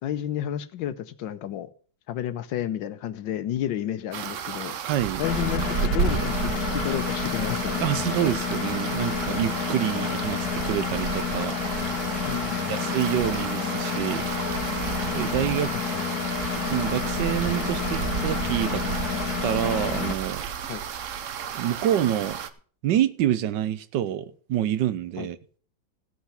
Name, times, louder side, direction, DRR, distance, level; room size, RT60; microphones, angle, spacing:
voice 1, 0.0-1.7 2.1-4.8 5.2-7.9 12.2-13.0 15.7-16.0 20.7-20.8 25.2-25.3, left 11 dB, 80° left, 1.5 m, -31 dB
sound 1, 4.1-22.5, right 8 dB, 60° right, 0.8 m, -32 dB
voice 2, 4.8-5.2 7.8-11.6 12.7-14.3 15.1-15.8 16.6-18.9 19.4-20.4 21.5-22.4 22.8-25.4, right 11 dB, 75° right, 1.3 m, -27 dB
Engine, 5.2-20.1, left 8 dB, 60° left, 1.5 m, -30 dB
15.5 x 5.7 x 5.7 m
omnidirectional pair, 2.0 m